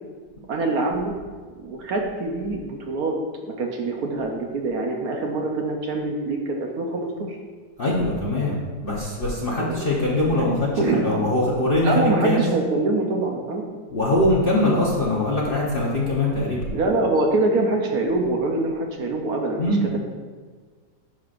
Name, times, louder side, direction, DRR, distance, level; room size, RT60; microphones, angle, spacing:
voice 1, 0.5-1.1 1.6-3.2 3.5-7.4 9.6-9.8 10.2-10.4 10.8-11.1 11.8-13.6 16.7-20.0, right 2 dB, 65° right, 1 dB, 1.1 m, -24 dB
voice 2, 7.8-12.4 13.9-16.7 19.6-19.9, left 1 dB, 40° left, -4 dB, 0.9 m, -22 dB
10.5 x 6.1 x 2.5 m, 1.5 s
omnidirectional pair, 1.9 m